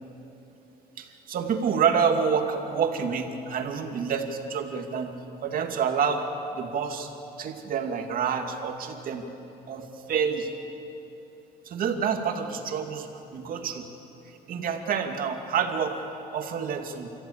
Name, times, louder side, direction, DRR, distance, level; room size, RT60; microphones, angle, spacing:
voice 1, 1.0-5.2 5.4-6.2 6.5-7.1 7.4-9.3 9.7-10.5 11.6-13.9 14.5-16.0 16.3-17.1, right 6 dB, 55° right, 4 dB, 2.5 m, -28 dB
29.5 x 15.0 x 8.8 m, 3.0 s
cardioid pair, 110°, 17 cm